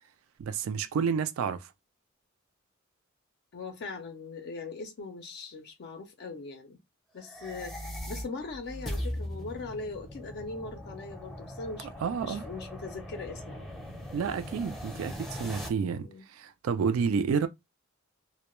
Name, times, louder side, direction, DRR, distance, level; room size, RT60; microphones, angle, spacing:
voice 1, 0.4-1.7 12.0-12.4 14.1-17.5, right 6 dB, 80° right, 0.3 m, -30 dB
voice 2, 3.5-6.8 7.1-7.7 8.1-11.9 12.2-13.7 16.0-16.2, left 3 dB, 55° left, 0.4 m, -40 dB
sound 1, 7.2-15.7, equal, ahead, 0.5 m, -40 dB
2.1 x 2.1 x 2.9 m
head